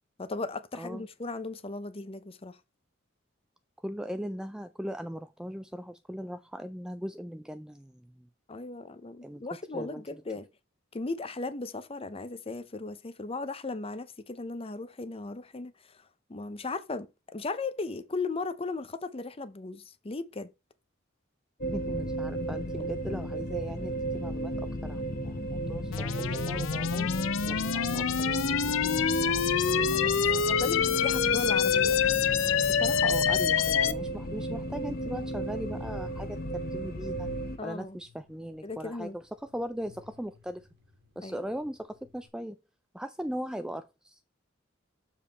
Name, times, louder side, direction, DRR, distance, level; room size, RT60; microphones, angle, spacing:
voice 1, 0.2-2.6 8.5-10.5 10.9-16.0 16.3-20.5 29.9-32.1 37.6-38.0 38.6-39.2 41.2-41.5, left 3 dB, 30° left, 0.7 m, -37 dB
voice 2, 3.8-8.3 9.2-10.0 21.7-30.6 32.7-37.3 37.6-40.7 41.2-42.6 42.9-44.2, equal, 5° right, 0.3 m, -39 dB
sound 1, 21.6-37.6, right 1 dB, 50° left, 1.1 m, -34 dB
sound 2, 25.9-33.9, left 7 dB, 85° left, 0.6 m, -26 dB
Ice Fields Moving Rumbling, 34.6-42.3, left 5 dB, 60° right, 1.8 m, -54 dB
7.1 x 4.8 x 4.1 m
head